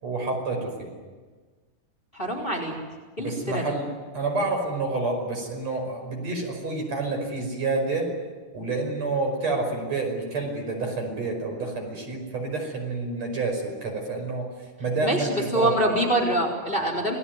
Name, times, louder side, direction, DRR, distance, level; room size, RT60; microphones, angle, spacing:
voice 1, 0.0-0.9 3.2-3.9 4.1-8.1 8.5-14.5 14.8-15.8, right 3 dB, 55° right, 3 dB, 6.6 m, -28 dB
voice 2, 2.1-2.7 3.2-3.7 15.0-17.2, right 1 dB, 15° left, -1 dB, 4.1 m, -25 dB
29.0 x 19.0 x 9.7 m, 1.4 s
omnidirectional pair, 3.7 m